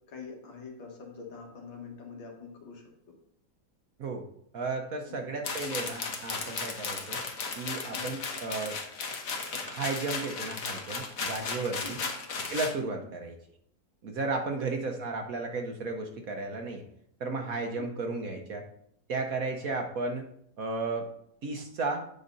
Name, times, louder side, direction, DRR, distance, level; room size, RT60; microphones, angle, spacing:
voice 1, 0.1-2.8 5.2-5.3 7.9-8.2 11.8-12.1 12.8-12.9 14.5-14.7 17.7-17.9, left 5 dB, 75° left, 0 dB, 2.4 m, -44 dB
voice 2, 4.5-7.2 7.6-8.8 9.7-12.0 12.5-13.4 14.0-16.8 17.2-18.6 19.1-20.3 20.6-21.1 21.4-22.0, right 3 dB, 55° right, 3 dB, 1.1 m, -34 dB
sound 1, 5.4-12.7, left 4 dB, 50° left, 1.3 m, -35 dB
8.8 x 5.4 x 4.0 m, 0.70 s
omnidirectional pair, 2.1 m